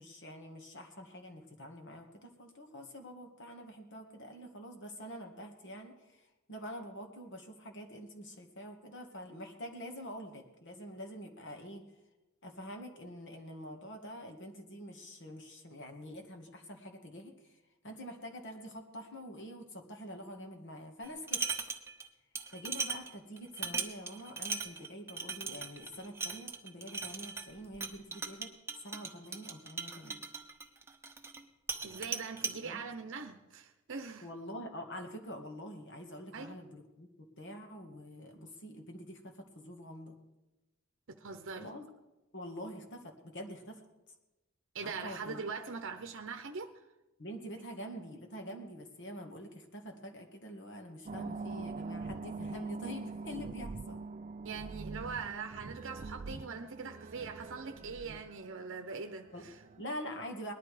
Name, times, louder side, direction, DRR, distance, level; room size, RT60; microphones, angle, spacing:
voice 1, 0.0-11.8 12.4-17.6 17.8-21.4 22.5-28.5 28.8-30.2 32.6-32.8 34.2-37.1 37.4-40.2 41.6-41.9 42.3-43.8 44.8-45.4 47.2-54.1 59.3-59.5 59.8-60.5, equal, 60° left, 4 dB, 2.0 m, -46 dB
sound 1, 21.0-22.1 22.3-31.4 31.7-32.6, right 4 dB, 10° right, 1.1 m, -39 dB
voice 2, 31.8-34.3 36.3-36.6 41.1-41.7 44.7-46.7 54.4-59.6, right 5 dB, 65° right, 7 dB, 0.8 m, -42 dB
sound 2, 51.1-59.9, right 3 dB, 35° right, 0.4 m, -43 dB
19.5 x 11.5 x 5.0 m, 1.1 s
head